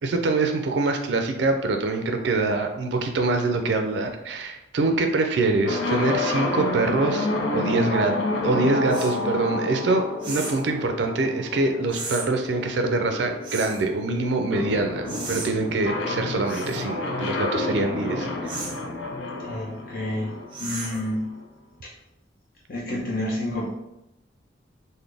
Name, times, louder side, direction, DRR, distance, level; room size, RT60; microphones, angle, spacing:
voice 1, 0.0-8.1 8.4-18.6, right 3 dB, 70° right, 5 dB, 0.4 m, -24 dB
sound 1, 5.6-21.4, left 2 dB, 90° left, 0.5 m, -30 dB
sound 2, 8.9-9.2 10.2-10.7 11.9-12.3 13.4-13.8 15.1-15.5 16.5-16.8 18.5-18.8 20.5-21.1, right 3 dB, 25° right, 0.6 m, -34 dB
voice 2, 19.4-20.3 20.6-21.3 22.7-23.7, left 1 dB, 50° left, -6 dB, 0.8 m, -29 dB
3.9 x 2.1 x 3.3 m, 0.89 s
head